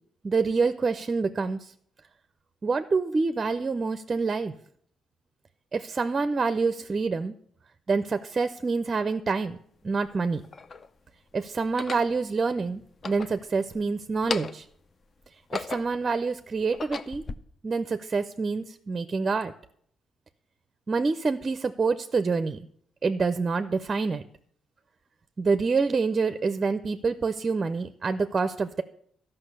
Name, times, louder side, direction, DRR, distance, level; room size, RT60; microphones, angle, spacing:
voice 1, 0.2-1.6 2.6-4.5 5.7-7.3 7.9-9.6 9.8-10.4 11.3-14.6 15.5-17.2 17.6-19.5 20.9-22.6 23.0-24.2 25.4-28.8, right 4 dB, 35° right, 11 dB, 0.5 m, -27 dB
sound 1, 9.1-9.2 10.0-10.9 11.6-12.1 12.9-13.8 14.1-14.7 15.2-16.1 16.6-17.4, left 4 dB, 40° left, 0.5 m, -36 dB
12.0 x 5.7 x 6.6 m, 0.64 s
cardioid pair, 90°, 0 cm